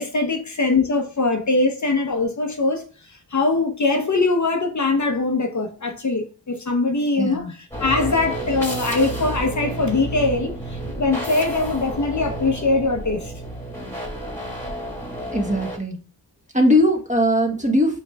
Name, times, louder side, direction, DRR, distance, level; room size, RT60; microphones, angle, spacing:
voice 1, 0.0-2.8 3.3-7.4 7.8-10.5 11.0-13.3, left 3 dB, 45° left, 0.8 m, -22 dB
voice 2, 7.2-7.5 15.3-16.0 16.5-18.0, equal, 20° right, 1.1 m, -19 dB
sound 1, 7.7-15.8, right 1 dB, 5° left, 1.5 m, -31 dB
4.9 x 3.0 x 2.3 m
cardioid pair, 40°, 41 cm